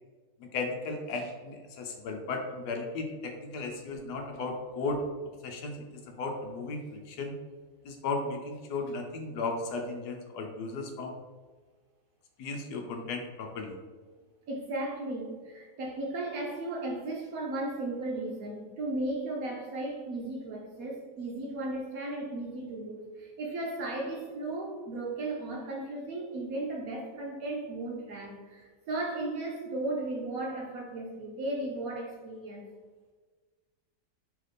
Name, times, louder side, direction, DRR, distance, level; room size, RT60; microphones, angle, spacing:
voice 1, 0.5-5.0 5.4-5.8 6.1-6.8 7.1-7.3 7.8-11.1 12.4-13.7, left 3 dB, 75° left, 3 dB, 1.1 m, -35 dB
voice 2, 3.5-4.1 14.5-32.6, right 2 dB, 65° right, -1 dB, 0.9 m, -35 dB
3.3 x 3.2 x 4.0 m, 1.4 s
omnidirectional pair, 1.9 m